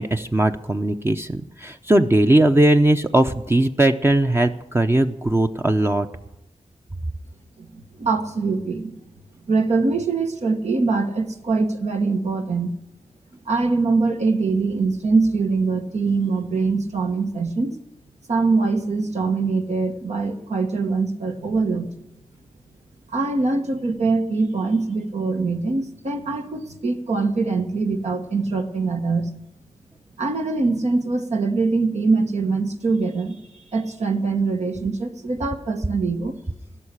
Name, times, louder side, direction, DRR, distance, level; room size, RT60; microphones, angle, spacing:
voice 1, 0.0-6.1, right 1 dB, 20° right, 5 dB, 0.7 m, -19 dB
voice 2, 7.6-9.0 9.5-12.7 13.4-17.7 18.3-21.9 23.1-29.3 30.2-36.4, right 3 dB, 70° right, 4 dB, 1.4 m, -23 dB
15.5 x 6.6 x 9.9 m, 0.86 s
wide cardioid pair, 65°, 12 cm